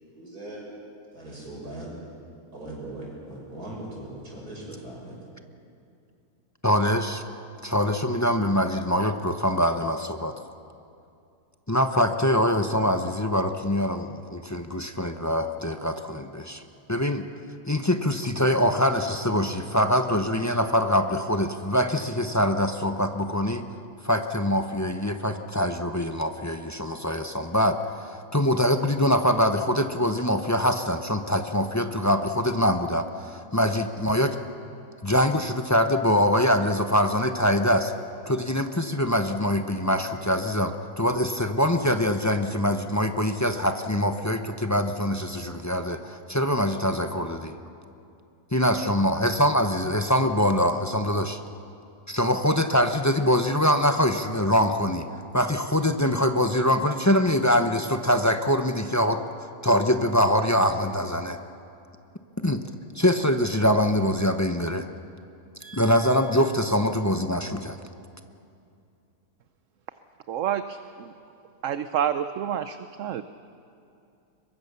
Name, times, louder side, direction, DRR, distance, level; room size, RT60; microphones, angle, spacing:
voice 1, 0.1-0.7 1.1-1.9 2.5-5.2 65.6-66.6, right 1 dB, 80° right, -3 dB, 6.7 m, -40 dB
voice 2, 6.6-7.2 7.6-10.3 11.7-16.6 16.9-17.2 17.7-23.6 24.0-34.4 35.0-37.9 38.3-47.5 48.5-51.4 52.1-55.1 55.3-61.4 62.4-62.6 62.9-64.8 65.7-67.8, equal, 15° left, 7 dB, 0.7 m, -24 dB
voice 3, 70.3-70.8 71.6-73.2, right 9 dB, 65° right, 11 dB, 0.9 m, -28 dB
23.0 x 22.0 x 6.8 m, 2.5 s
omnidirectional pair, 1.6 m